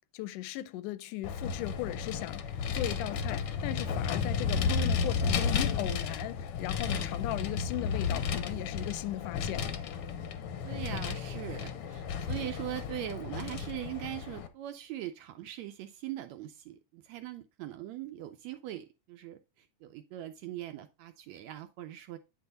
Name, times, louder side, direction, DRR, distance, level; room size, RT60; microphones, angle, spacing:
voice 1, 0.1-2.4 2.7-9.7, left 15 dB, 90° left, 2.1 m, -37 dB
Vehicle, 1.2-14.5, left 6 dB, 70° left, 1.3 m, -33 dB
voice 2, 10.6-22.2, right 13 dB, 80° right, 1.6 m, -41 dB
9.4 x 4.5 x 4.0 m
omnidirectional pair, 3.6 m